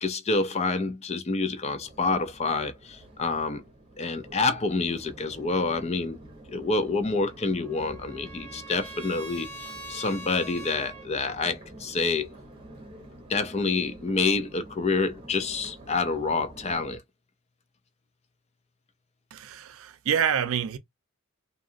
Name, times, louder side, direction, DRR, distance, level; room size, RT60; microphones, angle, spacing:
voice 1, 0.0-3.6 4.0-6.2 6.5-12.3 13.3-17.0, left 3 dB, 30° left, 0.4 m, -28 dB
Crowd, 1.8-17.0, right 1 dB, 25° right, 0.8 m, -48 dB
Trumpet, 7.2-11.1, right 2 dB, 5° left, 1.3 m, -43 dB
voice 2, 19.3-20.8, right 8 dB, 65° right, 0.4 m, -27 dB
2.8 x 2.3 x 2.4 m
head